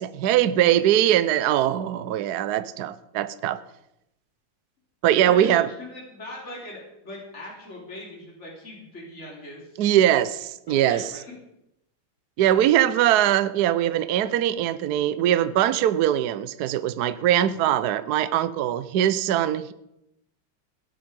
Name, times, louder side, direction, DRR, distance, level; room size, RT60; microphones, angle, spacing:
voice 1, 0.0-3.6 5.0-5.7 9.8-11.0 12.4-19.7, right 11 dB, 70° right, 14 dB, 1.0 m, -21 dB
voice 2, 5.2-9.8 10.7-11.4, left 1 dB, 30° left, -3 dB, 4.1 m, -40 dB
17.5 x 10.5 x 5.2 m, 0.84 s
omnidirectional pair, 2.3 m